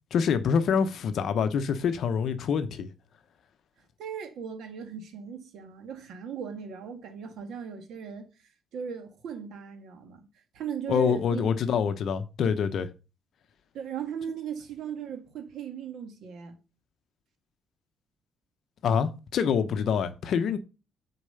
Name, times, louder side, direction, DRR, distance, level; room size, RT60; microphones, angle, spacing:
voice 1, 0.1-2.9 10.9-12.9 18.8-20.6, left 7 dB, 50° left, 0.7 m, -26 dB
voice 2, 4.0-8.3 8.7-10.3 10.5-11.5 13.7-16.6, right 7 dB, 60° right, 1.7 m, -37 dB
6.7 x 4.7 x 6.7 m
cardioid pair, 165°, 0 cm